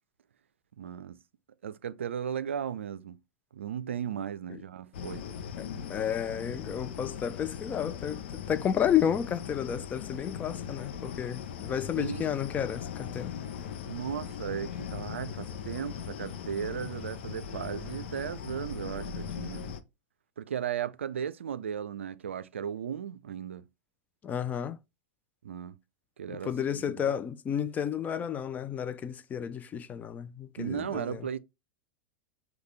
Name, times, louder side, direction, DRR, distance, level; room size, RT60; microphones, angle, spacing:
voice 1, 0.8-1.2 1.6-3.2 3.5-5.3 12.0-12.3 13.8-19.7 20.4-23.6 25.4-25.7 26.2-27.1 30.6-31.4, right 8 dB, 75° right, 0.4 m, -36 dB
sound 1, 4.9-19.8, left 8 dB, 60° left, 0.6 m, -39 dB
voice 2, 5.6-13.3 24.2-24.8 26.3-31.2, left 9 dB, 25° left, 0.4 m, -32 dB
6.4 x 2.3 x 3.2 m
figure-of-eight pair, 95°, 7 cm